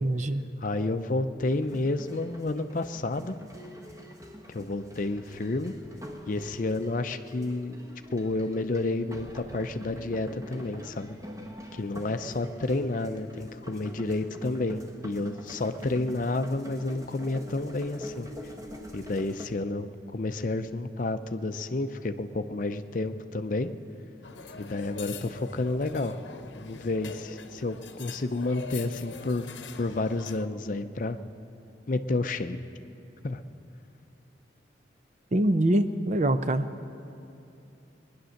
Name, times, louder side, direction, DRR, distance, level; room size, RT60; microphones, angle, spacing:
voice 1, 0.0-0.5 35.3-36.7, right 1 dB, 40° right, 10 dB, 0.5 m, -24 dB
voice 2, 0.6-3.3 4.5-5.7 6.3-7.8 8.1-11.2 11.7-18.3 18.9-23.7 24.6-26.2 26.6-29.5 29.8-31.2 31.9-32.6 33.2-33.4, left 2 dB, 45° left, 9 dB, 0.5 m, -30 dB
sound 1, 1.5-19.5, equal, 15° right, 1.1 m, -45 dB
sound 2, 24.2-30.5, left 4 dB, 75° left, 0.8 m, -43 dB
21.0 x 10.0 x 6.5 m, 2.7 s
head